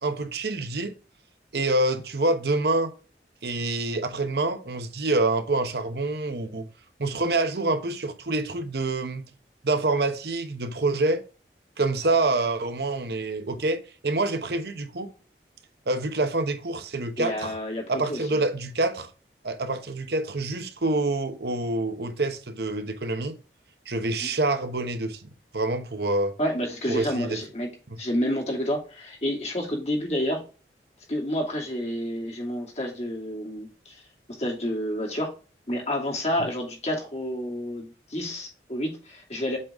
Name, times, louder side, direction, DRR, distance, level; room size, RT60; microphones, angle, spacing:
voice 1, 0.0-0.9 1.5-2.9 3.4-6.7 7.0-9.3 9.6-11.2 11.8-15.1 15.9-17.5 17.9-19.1 19.4-23.4 23.9-25.2 25.5-26.3 26.9-27.4 27.9-28.0, right 2 dB, 65° right, 1.0 m, -26 dB
voice 2, 17.2-18.2 24.2-24.3 26.4-27.7 28.0-30.4 31.1-34.0 34.4-35.3 35.7-39.6, equal, 40° left, 2.6 m, -29 dB
7.6 x 4.0 x 3.6 m
head